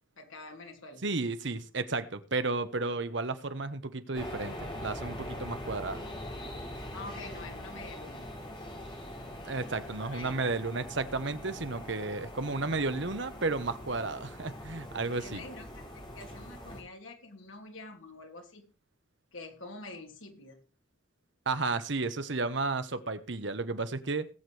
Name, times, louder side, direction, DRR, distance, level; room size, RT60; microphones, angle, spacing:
voice 1, 0.2-1.0 6.9-8.4 9.8-10.5 15.2-18.7 19.3-20.6, left 3 dB, 75° left, 2.9 m, -46 dB
voice 2, 1.0-6.0 9.5-15.4 21.5-24.3, right 3 dB, 60° right, 1.1 m, -33 dB
sound 1, 4.1-16.8, left 1 dB, 25° left, 3.7 m, -42 dB
19.5 x 8.1 x 3.4 m
head